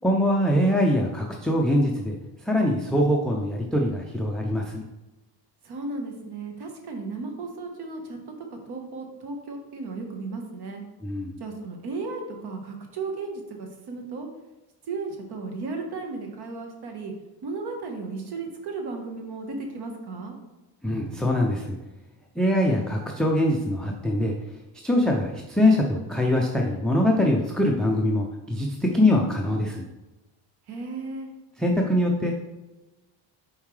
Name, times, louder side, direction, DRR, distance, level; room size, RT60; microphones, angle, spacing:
voice 1, 0.0-2.2 2.5-4.8 11.0-11.3 20.8-21.8 22.4-24.3 24.8-29.8 31.6-32.3, left 1 dB, ahead, -1 dB, 0.3 m, -23 dB
voice 2, 5.6-8.2 8.5-10.8 11.4-14.3 14.9-17.1 17.4-20.3 30.7-31.3, right 3 dB, 65° right, 2 dB, 1.3 m, -35 dB
7.0 x 4.5 x 3.2 m, 1.1 s
cardioid pair, 160°, 42 cm